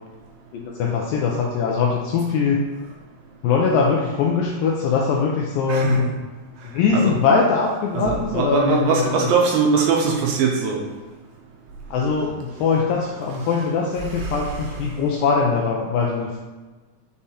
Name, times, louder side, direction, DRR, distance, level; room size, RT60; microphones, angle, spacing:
voice 1, 0.5-2.7 3.4-6.2 6.7-9.3 11.9-16.4, left 5 dB, 85° left, -1 dB, 2.0 m, -21 dB
voice 2, 5.7-6.1 6.9-7.2 8.0-10.8 14.1-14.6, right 5 dB, 80° right, 0 dB, 2.2 m, -21 dB
8.3 x 4.9 x 2.8 m, 1.3 s
omnidirectional pair, 4.6 m